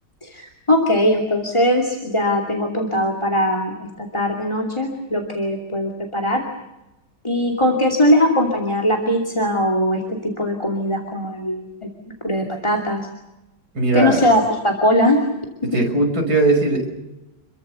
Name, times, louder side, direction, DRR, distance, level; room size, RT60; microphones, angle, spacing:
voice 1, 0.2-6.4 7.2-11.7 12.2-13.0 13.9-15.2 15.6-15.8, left 1 dB, 15° left, 3 dB, 2.7 m, -20 dB
voice 2, 13.7-14.2 15.7-16.9, right 2 dB, 55° right, 3 dB, 6.7 m, -18 dB
28.0 x 23.0 x 7.0 m, 1.0 s
omnidirectional pair, 2.0 m